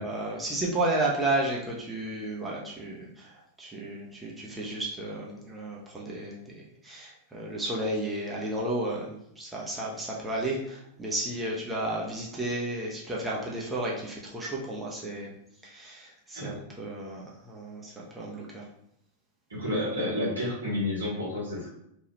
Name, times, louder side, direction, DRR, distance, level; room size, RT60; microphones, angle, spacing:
voice 1, 0.0-15.3 15.6-18.7, right 1 dB, 15° right, -4 dB, 0.7 m, -33 dB
voice 2, 19.5-21.7, left 1 dB, 80° right, -6 dB, 1.4 m, -30 dB
3.1 x 2.3 x 3.0 m, 0.75 s
figure-of-eight pair, 90°, 0 cm